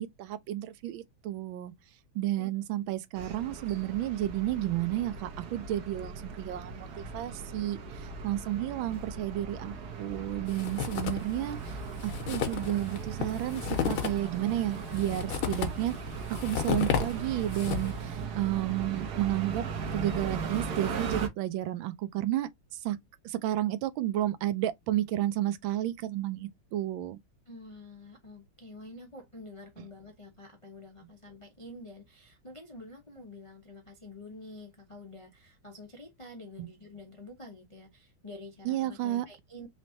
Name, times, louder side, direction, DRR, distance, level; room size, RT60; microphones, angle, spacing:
voice 1, 0.0-1.7 2.1-11.8 12.0-15.9 16.3-19.6 19.9-22.5 22.8-23.0 23.2-27.2 36.6-36.7 38.6-39.3, right 14 dB, 80° right, 1.3 m, -32 dB
sound 1, 3.2-21.3, right 5 dB, 60° right, 1.2 m, -38 dB
sound 2, 10.5-11.4 11.7-11.8 12.0-18.1, left 8 dB, 85° left, 1.7 m, -32 dB
voice 2, 27.5-39.7, left 2 dB, 50° left, 0.3 m, -48 dB
4.1 x 3.2 x 2.6 m
omnidirectional pair, 2.2 m